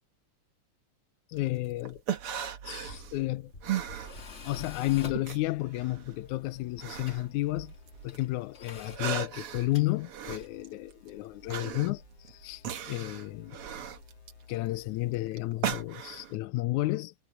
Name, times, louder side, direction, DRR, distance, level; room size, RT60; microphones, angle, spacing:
voice 1, 1.3-2.0 2.6-3.5 4.5-7.7 8.0-13.6 14.5-17.1, left 18 dB, 85° left, 2.0 m, -32 dB
sound 1, 1.4-4.7 5.0-8.2 8.6-16.4, right 9 dB, 55° right, 2.0 m, -37 dB
Tools, 2.7-10.6, left 4 dB, 35° left, 1.1 m, -48 dB
sound 2, 5.3-15.3, left 6 dB, 55° left, 3.0 m, -56 dB
omnidirectional pair, 3.5 m